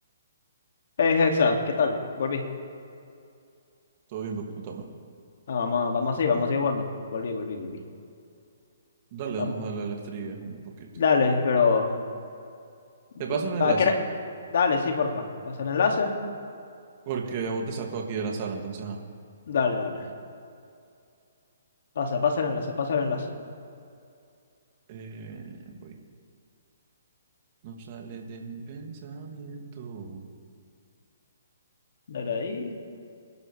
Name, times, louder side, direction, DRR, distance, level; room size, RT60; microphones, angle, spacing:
voice 1, 1.0-2.4 5.5-6.9 7.1-7.8 9.3-9.5 11.0-11.9 13.2-13.9 14.5-16.1 19.5-20.0 22.0-23.3 32.1-32.7, left 5 dB, 60° left, 2 dB, 2.5 m, -25 dB
voice 2, 4.1-4.8 9.1-10.9 13.2-13.9 17.1-19.0 24.9-26.0 27.6-30.2, right 5 dB, 40° right, 1 dB, 2.5 m, -34 dB
27.0 x 11.0 x 3.5 m, 2.4 s
hypercardioid pair, 140°, 0 cm